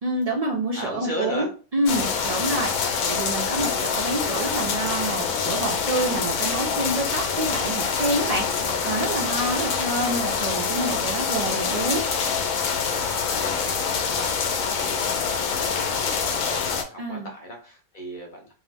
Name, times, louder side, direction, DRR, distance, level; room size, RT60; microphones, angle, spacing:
voice 1, 0.0-1.5 1.7-12.1 17.0-17.3, right 1 dB, 70° right, -2 dB, 0.3 m, -27 dB
voice 2, 0.7-1.5 12.9-18.5, equal, 55° left, 0 dB, 0.6 m, -37 dB
sound 1, 1.9-16.8, left 6 dB, 85° left, 1.0 m, -25 dB
2.8 x 2.0 x 3.3 m, 0.36 s
omnidirectional pair, 1.4 m